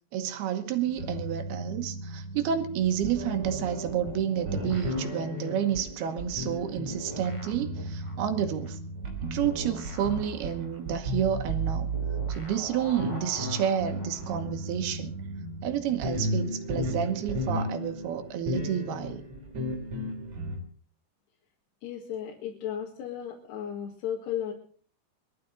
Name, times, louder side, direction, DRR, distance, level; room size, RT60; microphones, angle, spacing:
voice 1, 0.1-8.8 9.2-11.9 12.3-15.2 15.6-19.2, right 9 dB, 75° right, 7 dB, 3.1 m, -30 dB
sound 1, 0.8-20.6, right 1 dB, 45° right, 4.2 m, -34 dB
Piano, 3.1-9.7, right 2 dB, 25° right, 3.8 m, -47 dB
sound 2, 4.4-6.6 6.9-14.5, equal, 15° left, 1.2 m, -45 dB
voice 2, 21.8-24.5, left 9 dB, 85° left, -1 dB, 4.0 m, -34 dB
22.5 x 13.0 x 4.0 m, 0.44 s
omnidirectional pair, 4.6 m